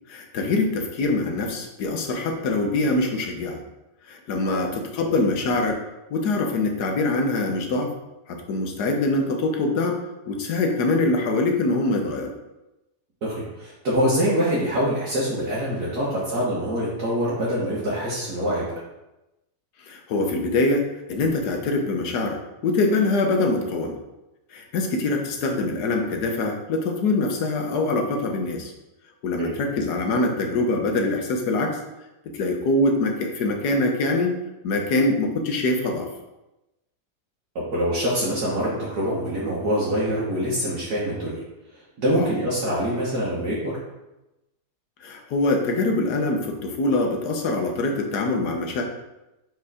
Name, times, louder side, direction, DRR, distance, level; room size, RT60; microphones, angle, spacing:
voice 1, 0.1-3.6 4.1-5.8 6.1-7.9 8.3-12.3 19.8-24.0 24.5-28.7 29.2-31.8 32.3-34.4 34.6-36.1 42.2-42.3 45.0-48.8, left 2 dB, 80° left, 3 dB, 1.5 m, -24 dB
voice 2, 13.2-18.7 29.4-29.5 37.6-41.4 41.7-43.8, equal, 70° right, -8 dB, 1.9 m, -25 dB
4.8 x 4.7 x 4.8 m, 0.97 s
omnidirectional pair, 1.7 m